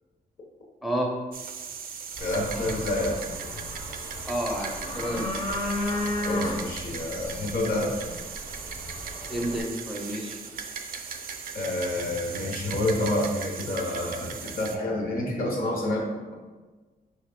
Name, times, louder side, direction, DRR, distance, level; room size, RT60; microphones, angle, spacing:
voice 1, 0.8-1.2 4.3-5.3 9.3-10.4, equal, ahead, 0 dB, 0.4 m, -30 dB
sound 1, 1.3-14.8, right 6 dB, 65° right, 0.4 m, -38 dB
voice 2, 2.2-3.2 6.2-7.9 11.5-16.1, left 1 dB, 65° left, -1 dB, 1.0 m, -28 dB
sound 2, 2.2-9.6, left 1 dB, 35° left, 0.7 m, -34 dB
4.2 x 3.2 x 3.5 m, 1.3 s
wide cardioid pair, 145°, 16 cm